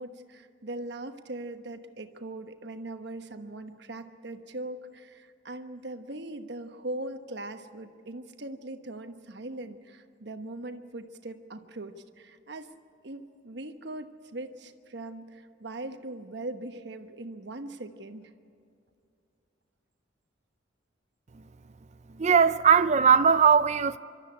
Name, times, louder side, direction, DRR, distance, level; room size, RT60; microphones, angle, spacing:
voice 1, 0.0-12.7 13.0-18.3, right 2 dB, 60° right, 1.2 m, -40 dB
voice 2, 22.2-24.0, right 6 dB, 35° right, 0.5 m, -20 dB
25.5 x 13.0 x 9.7 m
head